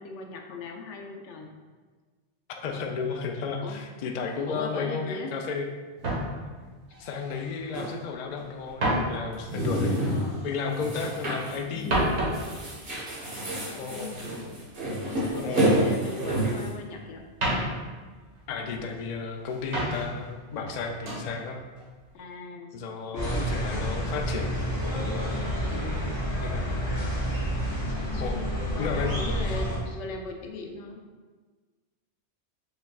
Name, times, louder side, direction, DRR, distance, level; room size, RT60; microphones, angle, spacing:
voice 1, 0.0-1.5 3.6-3.8 4.5-5.3 10.0-10.4 11.7-12.0 13.7-14.4 15.1-17.3 22.1-22.8 23.1-24.0 25.6-26.1 27.9-28.4 28.7-31.0, left 3 dB, 90° left, 2 dB, 0.9 m, -39 dB
voice 2, 2.5-5.7 7.0-10.1 10.4-12.0 13.8-14.2 15.4-15.7 18.5-21.6 22.7-24.5 25.0-25.3 26.4-26.7 28.2-28.5 28.8-29.2 29.5-29.6, left 5 dB, 60° left, 3 dB, 0.4 m, -33 dB
sound 1, 6.0-8.0 8.3-11.1 11.5-15.7 16.0-16.9 17.2-19.0 19.4-20.3 20.6-21.3 21.8-22.1, right 1 dB, 85° right, 1.5 m, -33 dB
sound 2, 7.7-7.9 9.3-10.3 10.8-11.6 11.9-12.0 12.3-16.7, right 1 dB, 55° right, 1.4 m, -28 dB
sound 3, 23.1-29.8, equal, 25° left, 1.4 m, -29 dB
5.4 x 3.4 x 2.3 m, 1.4 s
omnidirectional pair, 1.1 m